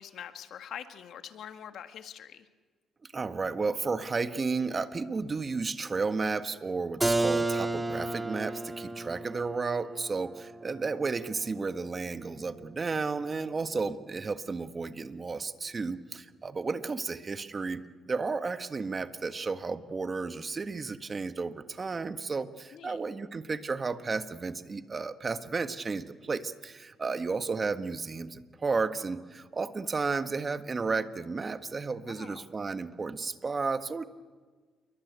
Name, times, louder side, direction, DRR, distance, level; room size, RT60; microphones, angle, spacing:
voice 1, 0.0-2.5 22.7-23.0 27.1-27.3 32.0-32.5, left 9 dB, 70° left, 9 dB, 1.8 m, -44 dB
voice 2, 3.1-34.1, right 4 dB, 35° right, 10 dB, 1.6 m, -33 dB
Keyboard (musical), 7.0-12.6, right 2 dB, 15° right, 2.0 m, -33 dB
29.0 x 23.5 x 8.3 m, 1.4 s
cardioid pair, 90°, 0 cm